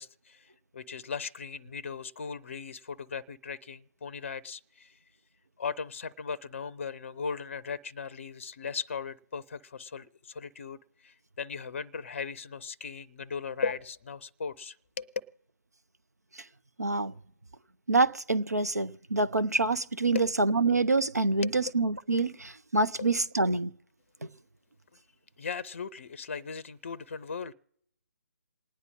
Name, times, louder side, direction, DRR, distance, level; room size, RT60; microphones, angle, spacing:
voice 1, 0.0-5.0 5.6-15.1 20.1-20.3 21.4-21.5 23.0-23.1 25.4-27.5, left 5 dB, 45° left, 0.5 m, -38 dB
voice 2, 16.8-17.1 17.9-23.7, right 3 dB, 80° right, 0.6 m, -26 dB
28.0 x 9.5 x 3.7 m
figure-of-eight pair, 140°, 9 cm